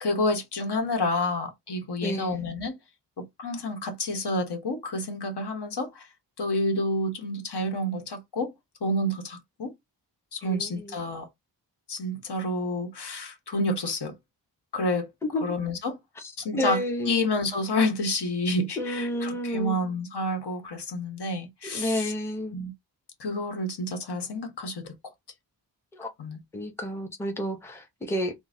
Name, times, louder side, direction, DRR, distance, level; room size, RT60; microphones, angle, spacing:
voice 1, 0.0-2.8 3.4-6.1 6.4-8.5 8.8-9.7 10.3-11.3 11.9-14.1 14.7-15.1 15.4-16.0 16.4-22.1 22.5-22.7 23.2-24.9 26.2-26.4, left 1 dB, 65° left, 1.2 m, -29 dB
voice 2, 2.0-2.3 10.4-10.9 15.3-15.4 16.5-17.2 18.8-19.8 21.7-22.6 25.9-26.1 26.5-28.3, equal, 5° left, 0.7 m, -30 dB
3.8 x 2.1 x 3.7 m
wide cardioid pair, 110°, 43 cm